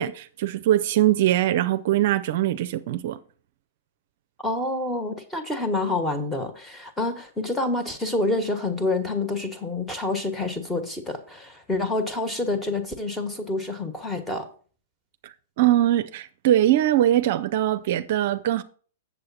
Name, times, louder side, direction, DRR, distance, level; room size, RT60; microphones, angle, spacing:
voice 1, 0.0-3.2 15.2-18.6, right 13 dB, 55° right, 0.5 m, -22 dB
voice 2, 4.4-14.5, left 2 dB, 10° left, 1.4 m, -27 dB
7.6 x 7.1 x 4.2 m
hypercardioid pair, 110°, 0 cm